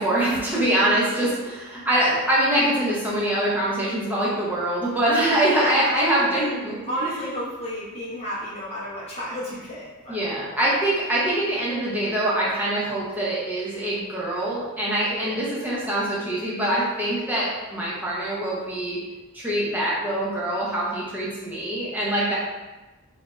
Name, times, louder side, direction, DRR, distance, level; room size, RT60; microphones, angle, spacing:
voice 1, 0.0-6.8 10.1-19.0 19.3-22.3, right 1 dB, 5° right, -7 dB, 0.6 m, -24 dB
voice 2, 0.8-1.1 5.5-6.6 6.8-10.3 15.1-15.3, equal, 25° left, -8 dB, 0.8 m, -31 dB
2.7 x 2.3 x 3.0 m, 1.1 s
head